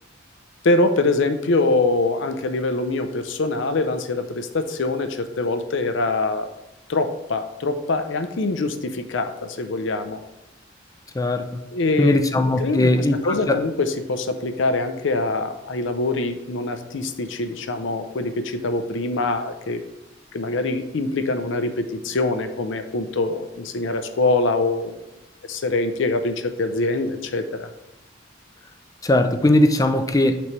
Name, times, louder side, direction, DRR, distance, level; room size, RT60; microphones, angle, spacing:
voice 1, 0.6-6.5 6.9-10.2 11.7-12.2 12.6-19.8 20.3-24.9 25.5-27.7, left 2 dB, 70° left, 8 dB, 0.6 m, -24 dB
voice 2, 11.1-11.6 12.0-13.6 29.0-30.4, left 1 dB, 20° left, 8 dB, 0.4 m, -19 dB
6.0 x 3.1 x 5.8 m, 0.96 s
head